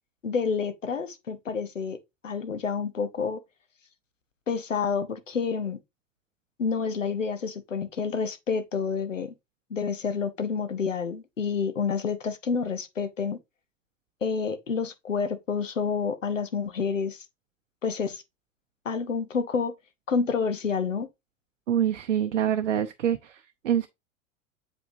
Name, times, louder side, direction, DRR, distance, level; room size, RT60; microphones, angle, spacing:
voice 1, 0.2-2.0 2.2-3.4 4.5-5.8 6.6-9.3 9.7-13.4 14.2-17.2 17.8-18.2 18.8-19.7 20.1-21.1, left 5 dB, 85° left, 0.9 m, -29 dB
voice 2, 21.7-23.9, right 9 dB, 70° right, 0.7 m, -26 dB
7.7 x 4.9 x 2.6 m
figure-of-eight pair, 85°, 37 cm